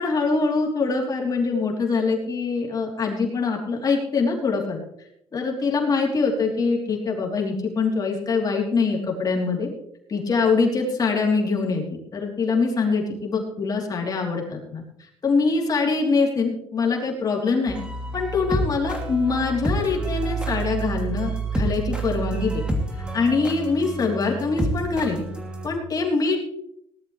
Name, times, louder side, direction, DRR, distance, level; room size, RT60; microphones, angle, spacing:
voice 1, 0.0-4.8 5.3-9.7 10.1-11.8 12.1-14.8 15.2-17.8 18.1-22.6 23.0-25.2 25.6-26.4, left 4 dB, 35° left, 0 dB, 3.4 m, -23 dB
sound 1, 17.7-25.7, right 2 dB, 10° right, 2.8 m, -28 dB
18.5 x 12.0 x 3.3 m, 0.74 s
cardioid pair, 115°, 11 cm